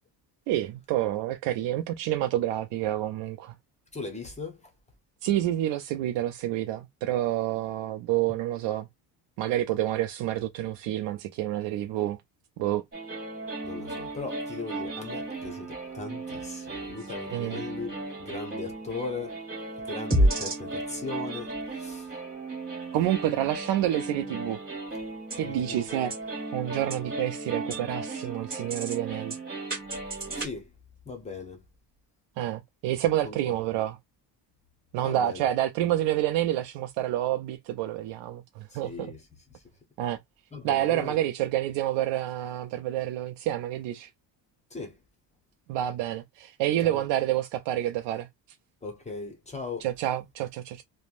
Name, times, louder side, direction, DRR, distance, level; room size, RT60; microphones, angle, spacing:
voice 1, 0.5-3.5 5.2-8.9 9.4-12.2 12.6-12.8 17.3-17.6 22.9-24.6 25.4-26.1 26.5-29.4 32.4-34.0 34.9-39.1 40.0-40.2 40.6-44.1 45.7-48.3 49.8-50.8, right 13 dB, 80° right, 0.5 m, -28 dB
voice 2, 3.9-4.7 13.6-19.4 19.8-22.1 25.4-25.8 30.3-30.7 31.0-31.6 33.2-33.4 35.0-35.4 38.7-39.3 39.5-39.6 40.5-41.2 44.7-45.0 46.8-47.1 48.8-49.9, left 4 dB, 15° left, 0.7 m, -38 dB
sound 1, 12.9-30.5, right 1 dB, 20° right, 1.5 m, -33 dB
3.2 x 2.1 x 2.5 m
cardioid pair, 150°, 43 cm